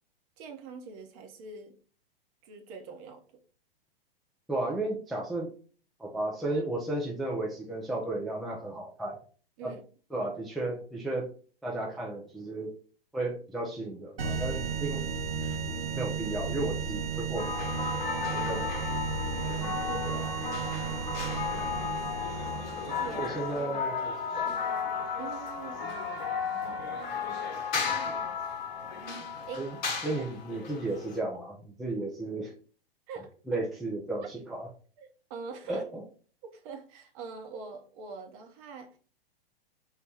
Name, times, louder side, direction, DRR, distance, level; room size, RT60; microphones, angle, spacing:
voice 1, 0.4-1.7 2.4-3.2 9.6-9.8 14.5-14.6 18.3-18.5 19.9-20.2 21.3-22.0 22.7-23.3 25.2-25.8 27.6-27.7 29.5-29.7 30.2-30.3 33.1-33.4 35.0-35.8 36.5-39.0, right 4 dB, 35° right, 0.8 m, -44 dB
voice 2, 4.5-5.5 6.0-9.2 9.6-9.8 10.1-11.3 11.6-12.7 13.1-15.0 15.6-18.6 18.9-19.0 20.0-20.3 23.2-24.5 29.6-29.8 30.0-32.5 33.5-34.7 35.7-36.0, right 2 dB, ahead, 0.4 m, -34 dB
sound 1, 14.2-23.6, right 5 dB, 75° right, 0.8 m, -34 dB
sound 2, 17.4-31.2, left 5 dB, 50° left, 1.0 m, -34 dB
4.0 x 2.2 x 4.2 m
figure-of-eight pair, 110°, 29 cm